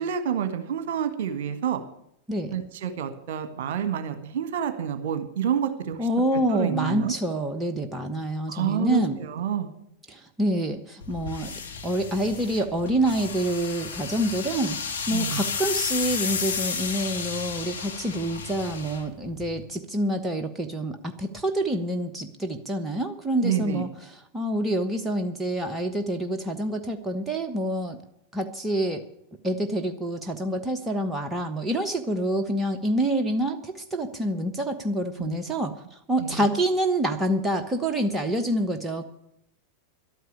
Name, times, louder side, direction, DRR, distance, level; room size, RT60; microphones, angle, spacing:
voice 1, 0.0-1.8 2.5-6.0 6.5-7.1 8.5-9.7 15.1-15.5 23.4-23.8 35.2-35.4 36.2-36.5, right 8 dB, 55° right, 9 dB, 1.6 m, -28 dB
voice 2, 6.0-9.2 10.1-11.5 11.8-28.0 28.3-29.0 29.4-39.0, right 1 dB, 10° right, 5 dB, 1.1 m, -27 dB
sound 1, 11.0-19.6, left 5 dB, 70° left, 1.7 m, -33 dB
12.0 x 9.3 x 8.4 m, 0.74 s
figure-of-eight pair, 90°, 0 cm